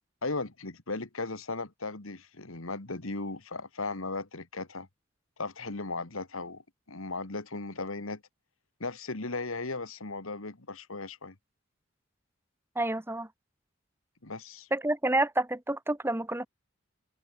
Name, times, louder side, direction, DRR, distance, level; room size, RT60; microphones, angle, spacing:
voice 1, 0.2-4.9 5.4-6.6 6.9-8.2 8.8-11.4 14.2-14.7, left 3 dB, 75° left, 2.1 m, -36 dB
voice 2, 12.7-13.3 14.7-16.5, right 2 dB, 10° right, 1.5 m, -29 dB
head